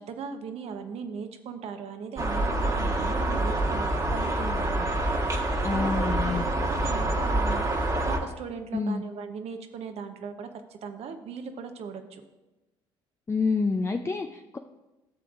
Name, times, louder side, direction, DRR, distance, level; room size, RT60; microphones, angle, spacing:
voice 1, 0.0-5.0 5.7-12.2, right 6 dB, 55° right, 7 dB, 0.9 m, -38 dB
sound 1, 2.2-8.2, right 1 dB, 30° right, 1.4 m, -26 dB
voice 2, 5.6-6.4 8.7-9.0 13.3-14.6, left 4 dB, 20° left, 5 dB, 0.5 m, -28 dB
13.0 x 6.9 x 2.5 m, 1.1 s
hypercardioid pair, 55°, 12 cm